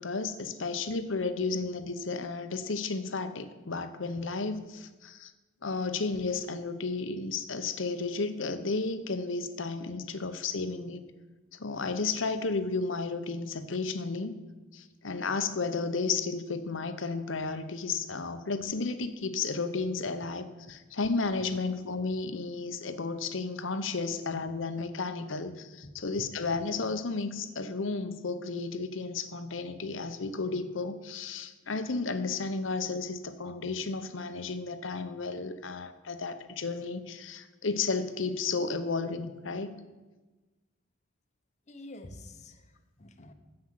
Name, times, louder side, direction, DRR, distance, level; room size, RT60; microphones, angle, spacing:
voice 1, 0.0-5.3 5.6-11.0 11.6-14.3 14.7-39.8, left 4 dB, 75° left, 10 dB, 0.9 m, -33 dB
voice 2, 41.7-43.3, left 1 dB, 35° left, 7 dB, 1.0 m, -48 dB
9.7 x 7.8 x 7.7 m, 1.2 s
head